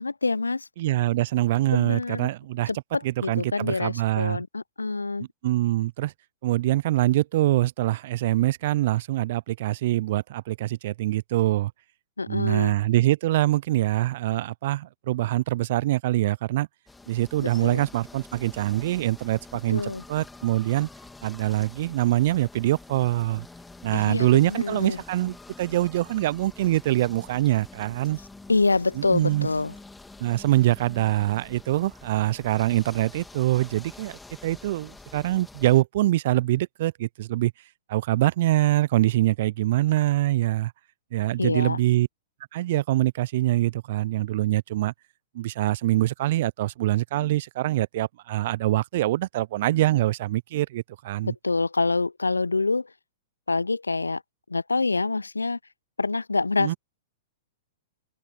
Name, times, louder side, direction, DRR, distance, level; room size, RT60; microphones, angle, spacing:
voice 1, 0.0-0.7 1.7-2.3 2.7-5.3 12.2-12.8 17.4-17.9 19.7-20.0 23.9-25.0 28.5-29.7 41.4-41.8 51.2-52.9 53.5-54.2 54.5-55.6 56.0-56.8, left 3 dB, 85° left, 0.7 m, -26 dB
voice 2, 0.8-2.7 3.0-4.4 5.4-6.1 6.4-11.7 12.3-16.7 17.1-20.9 21.2-23.5 23.8-28.2 29.0-29.5 30.2-37.5 37.9-40.7 41.1-42.1 42.5-44.9 45.3-51.3 56.6-56.7, right 15 dB, 50° right, 0.6 m, -24 dB
sound 1, 16.9-35.8, left 3 dB, 5° left, 3.1 m, -47 dB
open air
figure-of-eight pair, 105°, 0 cm